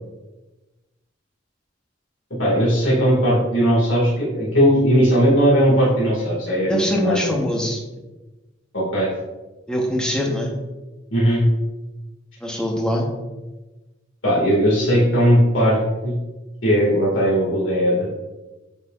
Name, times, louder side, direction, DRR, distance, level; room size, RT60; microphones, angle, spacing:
voice 1, 2.4-7.3 8.7-9.1 11.1-11.4 14.2-16.1 16.6-17.9, equal, 70° left, -6 dB, 2.1 m, -18 dB
voice 2, 6.7-7.8 9.7-10.5 12.4-13.1, left 1 dB, 5° left, -1 dB, 1.0 m, -22 dB
8.2 x 4.8 x 2.5 m, 1.1 s
head